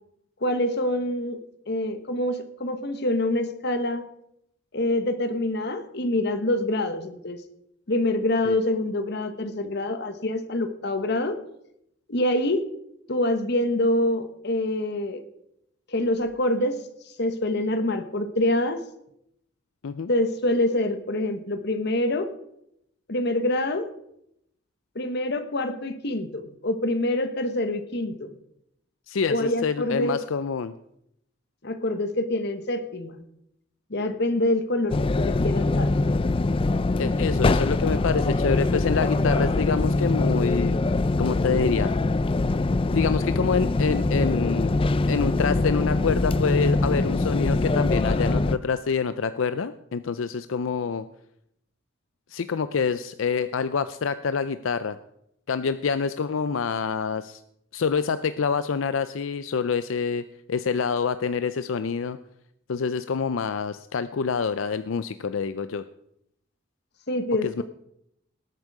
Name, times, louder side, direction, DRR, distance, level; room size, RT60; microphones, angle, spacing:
voice 1, 0.4-1.4 1.7-4.1 4.7-7.4 7.9-11.4 12.1-12.6 13.1-15.2 15.9-16.8 17.2-18.8 20.1-22.3 23.1-23.9 24.9-28.3 29.3-30.2 31.6-33.2 33.9-35.9 67.1-67.6, left 1 dB, 60° left, 9 dB, 1.3 m, -26 dB
voice 2, 29.1-30.8 37.0-40.8 41.2-41.9 42.9-44.7 45.1-51.0 52.3-55.0 55.5-57.4 57.7-62.2 62.7-65.8 67.4-67.6, left 5 dB, 85° left, 13 dB, 0.5 m, -26 dB
sound 1, 34.9-48.6, left 2 dB, 25° left, 0.4 m, -23 dB
19.0 x 8.3 x 4.9 m, 0.77 s
head